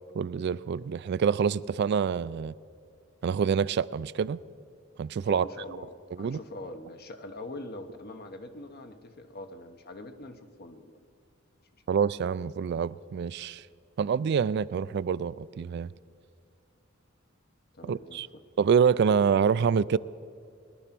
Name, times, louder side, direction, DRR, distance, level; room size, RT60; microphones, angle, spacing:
voice 1, 0.1-2.5 3.2-4.4 5.0-5.5 6.2-6.4 11.9-13.6 14.0-15.9 17.8-18.3 18.6-20.0, right 6 dB, 55° right, 0.3 m, -26 dB
voice 2, 5.2-5.9 6.2-11.0 17.7-18.4, left 2 dB, 50° left, 1.0 m, -43 dB
20.5 x 11.0 x 6.0 m
head